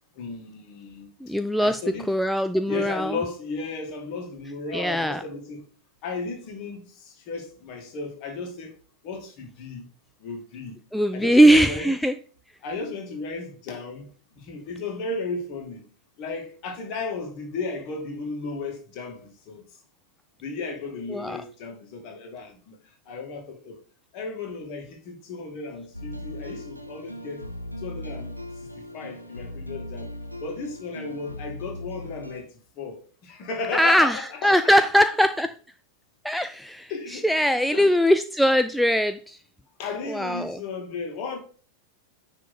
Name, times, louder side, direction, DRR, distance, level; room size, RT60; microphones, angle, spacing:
voice 1, 0.2-1.1 1.6-2.1 2.7-5.6 6.0-8.7 9.0-9.9 10.2-10.8 11.1-11.9 12.6-14.1 14.3-15.8 16.2-19.6 20.4-22.8 23.1-23.8 24.1-27.5 27.8-28.4 28.9-30.1 30.4-32.5 32.8-34.8 36.9-37.3 37.7-38.0 39.8-41.4, left 4 dB, 40° left, 2.3 m, -34 dB
voice 2, 1.2-1.8 2.1-3.2 4.7-5.2 10.9-12.1 21.1-21.4 33.7-35.5 36.2-39.4 40.1-40.6, equal, ahead, 0.4 m, -21 dB
sound 1, 25.9-32.4, left 1 dB, 90° right, 1.0 m, -38 dB
9.7 x 3.6 x 4.3 m
figure-of-eight pair, 90°, 0 cm